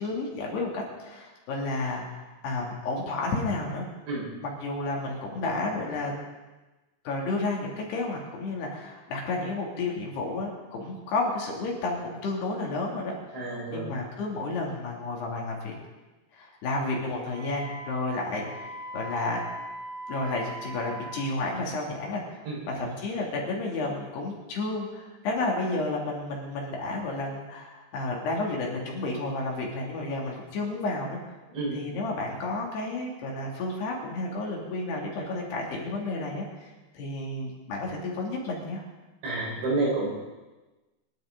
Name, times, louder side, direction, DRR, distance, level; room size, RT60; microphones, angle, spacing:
voice 1, 0.0-3.9 4.4-6.1 7.0-13.1 13.7-15.8 16.3-18.7 18.9-19.4 20.1-31.2 31.7-38.8, left 2 dB, 70° left, -2 dB, 4.7 m, -31 dB
voice 2, 13.3-13.9 22.5-22.7 31.5-31.8 39.2-40.1, right 2 dB, 85° right, -4 dB, 7.4 m, -29 dB
Wind instrument woodwind instrument, 17.3-21.3, right 2 dB, 50° right, 5.4 m, -40 dB
24.5 x 11.5 x 4.0 m, 1.2 s
omnidirectional pair, 5.0 m